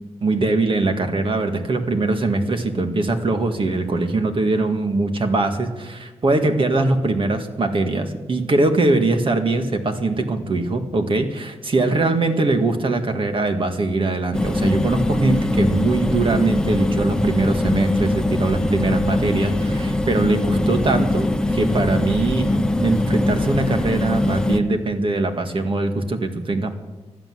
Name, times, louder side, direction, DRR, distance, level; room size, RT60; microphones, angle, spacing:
voice 1, 0.2-26.7, right 2 dB, 50° right, 5 dB, 1.9 m, -21 dB
sound 1, 14.3-24.6, left 2 dB, 5° left, 1.0 m, -22 dB
15.5 x 12.0 x 7.8 m, 1.2 s
wide cardioid pair, 95°, 12 cm